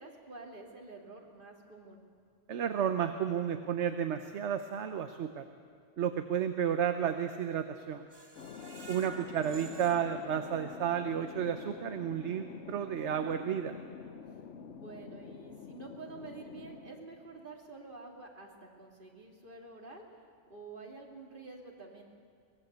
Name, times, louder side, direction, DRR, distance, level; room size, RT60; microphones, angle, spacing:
voice 1, 0.0-2.0 8.6-8.9 14.7-20.0 20.5-22.1, right 3 dB, 45° right, 1 dB, 2.8 m, -49 dB
voice 2, 2.5-5.4 6.0-8.0 8.9-13.7, right 8 dB, 65° right, 8 dB, 1.2 m, -32 dB
Screech, 8.1-11.1 11.5-11.6 12.0-12.1, right 2 dB, 20° right, 1.3 m, -51 dB
Thunder, 8.4-17.7, left 6 dB, 70° left, 1.2 m, -48 dB
23.5 x 19.5 x 8.1 m, 2.1 s
omnidirectional pair, 1.3 m